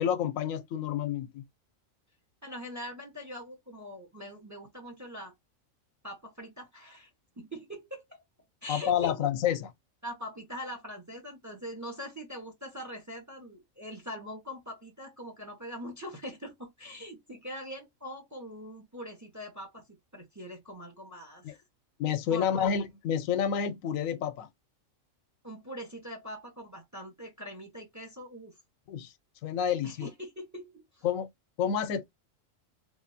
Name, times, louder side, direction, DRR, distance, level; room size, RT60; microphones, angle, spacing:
voice 1, 0.0-1.4 8.7-9.7 21.4-21.5 22.0-24.5 28.9-29.1 29.4-30.1 31.0-31.3 31.6-32.0, left 8 dB, 90° left, 1.0 m, -29 dB
voice 2, 2.4-5.3 6.0-7.1 7.4-8.2 8.6-9.1 10.0-19.8 20.1-21.6 22.3-22.7 25.4-28.5 29.8-31.1, equal, 15° right, 0.8 m, -42 dB
3.1 x 2.6 x 2.6 m
omnidirectional pair, 1.4 m